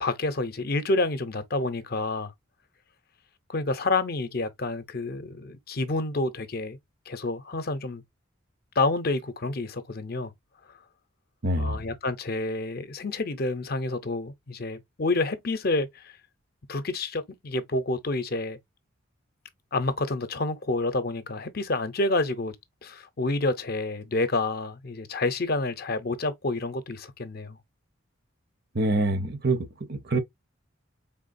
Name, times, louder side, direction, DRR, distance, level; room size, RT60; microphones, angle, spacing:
voice 1, 0.0-2.3 3.5-6.8 7.1-8.0 8.8-10.3 11.6-16.1 16.7-18.6 19.7-22.6 22.8-27.6, left 2 dB, 50° left, 0.6 m, -28 dB
voice 2, 11.4-11.8 28.7-30.2, right 2 dB, 50° right, 0.7 m, -25 dB
4.6 x 3.6 x 2.5 m
head